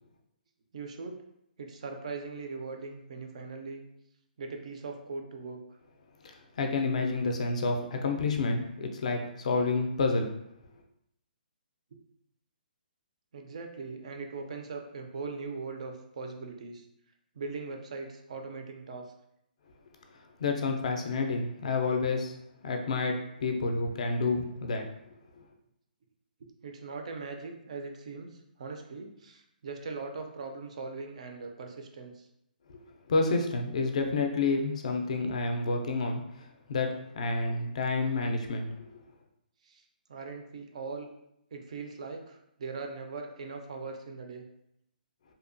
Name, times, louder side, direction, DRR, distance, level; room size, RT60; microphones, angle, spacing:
voice 1, 0.7-1.2 1.6-3.8 4.4-5.6 11.9-12.0 13.3-16.9 17.3-19.1 26.6-32.3 39.6-39.8 40.1-41.1 41.5-44.5, right 4 dB, 45° right, 4 dB, 0.3 m, -40 dB
voice 2, 6.2-10.3 20.4-22.3 22.6-24.8 25.4-25.5 32.7-32.8 33.1-38.7, left 3 dB, 45° left, 4 dB, 0.3 m, -29 dB
2.7 x 2.2 x 2.5 m, 0.78 s
hypercardioid pair, 170°, 5 cm